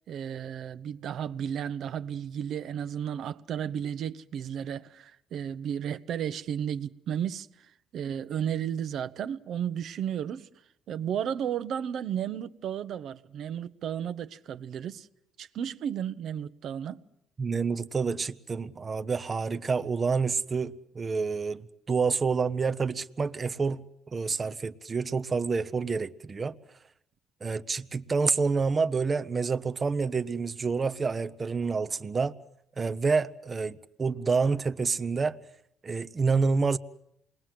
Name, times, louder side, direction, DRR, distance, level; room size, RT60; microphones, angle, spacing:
voice 1, 0.1-10.5 10.9-15.1 15.4-17.0, right 9 dB, 60° right, 1.0 m, -33 dB
voice 2, 17.4-23.8 24.1-26.6 27.4-32.3 32.8-35.4 35.8-36.8, right 4 dB, 30° right, 0.9 m, -28 dB
28.0 x 21.0 x 7.7 m
cardioid pair, 115°, 0 cm